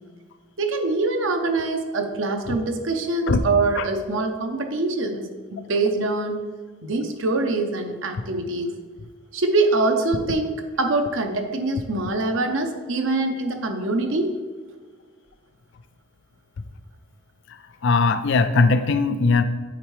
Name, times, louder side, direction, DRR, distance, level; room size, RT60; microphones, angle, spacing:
voice 1, 0.6-6.4 6.8-8.7 9.3-14.3, right 3 dB, 70° right, 5 dB, 0.8 m, -24 dB
voice 2, 17.5-19.4, left 4 dB, 65° left, 11 dB, 0.4 m, -20 dB
8.8 x 4.5 x 3.2 m, 1.5 s
head